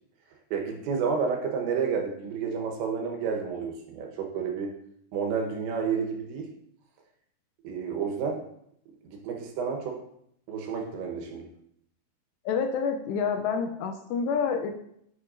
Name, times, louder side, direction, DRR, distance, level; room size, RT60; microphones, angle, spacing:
voice 1, 0.5-4.7 5.1-6.5 7.6-8.4 9.0-10.0 10.5-11.5, right 6 dB, 85° right, 2 dB, 3.5 m, -30 dB
voice 2, 12.5-14.7, left 6 dB, 80° left, 5 dB, 2.7 m, -28 dB
8.7 x 7.6 x 2.6 m, 0.72 s
omnidirectional pair, 5.1 m